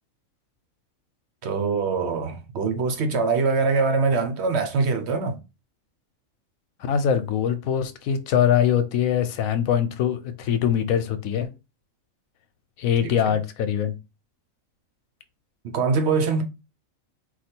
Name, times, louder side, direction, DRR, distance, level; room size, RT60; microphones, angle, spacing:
voice 1, 1.4-5.4 13.0-13.3 15.6-16.4, right 4 dB, 60° right, 0.9 m, -23 dB
voice 2, 6.8-11.5 12.8-13.9, left 9 dB, 85° left, 1.1 m, -23 dB
4.5 x 2.3 x 4.3 m
omnidirectional pair, 1.4 m